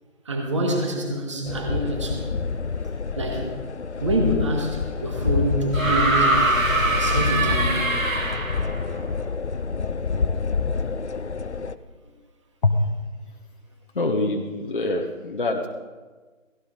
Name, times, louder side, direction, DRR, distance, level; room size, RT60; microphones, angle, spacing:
voice 1, 0.2-2.3 3.1-3.5 4.0-6.5 6.9-7.9, right 1 dB, 20° right, 2 dB, 1.7 m, -26 dB
sound 1, 1.5-11.7, left 5 dB, 55° left, 0.7 m, -27 dB
sound 2, 5.7-8.8 10.0-10.1, right 2 dB, 80° right, 2.6 m, -23 dB
voice 2, 13.9-15.7, left 2 dB, 40° left, 2 dB, 1.2 m, -24 dB
17.5 x 17.0 x 3.8 m, 1.4 s
figure-of-eight pair, 165°, 40 cm